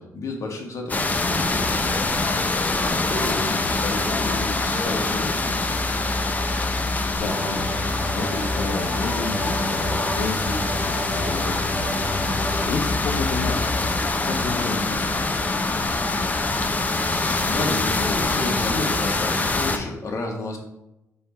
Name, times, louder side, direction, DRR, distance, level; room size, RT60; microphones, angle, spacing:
voice 1, 0.0-1.8 2.8-5.6 16.9-20.6, left 2 dB, 55° left, 1 dB, 1.6 m, -31 dB
sound 1, 0.9-19.8, left 2 dB, 25° left, 0.7 m, -24 dB
voice 2, 7.1-11.8 12.2-13.9 14.2-15.6, left 4 dB, 75° left, -2 dB, 0.9 m, -32 dB
sound 2, 7.2-12.7, equal, 10° right, 1.4 m, -32 dB
5.4 x 3.5 x 5.5 m, 0.89 s
cardioid pair, 80°, 6 cm